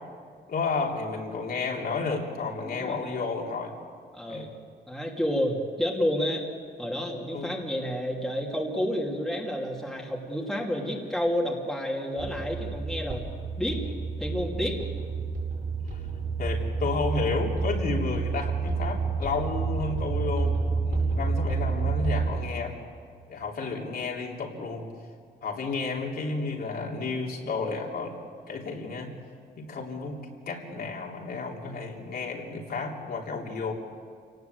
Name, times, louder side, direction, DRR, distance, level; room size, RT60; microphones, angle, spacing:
voice 1, 0.5-3.7 4.3-4.5 7.3-7.6 16.4-22.8 23.3-24.9 25.4-28.2 28.5-29.1 29.6-33.7, left 4 dB, 55° left, -1 dB, 3.5 m, -32 dB
voice 2, 2.6-3.2 4.1-4.5 4.9-6.4 6.8-13.8 14.2-14.8, equal, ahead, -1 dB, 2.9 m, -30 dB
sound 1, 12.2-22.3, right 4 dB, 50° right, 7.5 m, -29 dB
28.0 x 18.5 x 8.1 m, 2.1 s
wide cardioid pair, 155°, 19 cm